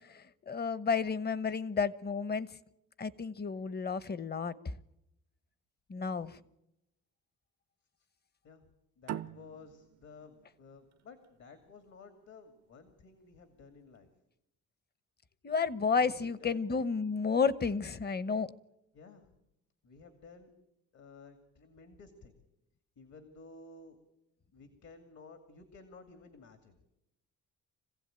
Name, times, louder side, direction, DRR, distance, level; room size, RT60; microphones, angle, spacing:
voice 1, 0.1-2.5 3.0-4.7 5.9-6.3 15.4-18.5, left 5 dB, 35° left, 17 dB, 1.0 m, -31 dB
voice 2, 9.0-14.1 16.0-16.7 18.9-19.3 19.8-20.5 20.9-22.4 23.0-24.0 24.5-26.8, left 4 dB, 65° left, 8 dB, 2.6 m, -54 dB
sound 1, 9.1-12.3, right 11 dB, 60° right, 0.7 m, -44 dB
26.0 x 16.0 x 9.0 m, 0.89 s
cardioid pair, 90°, 30 cm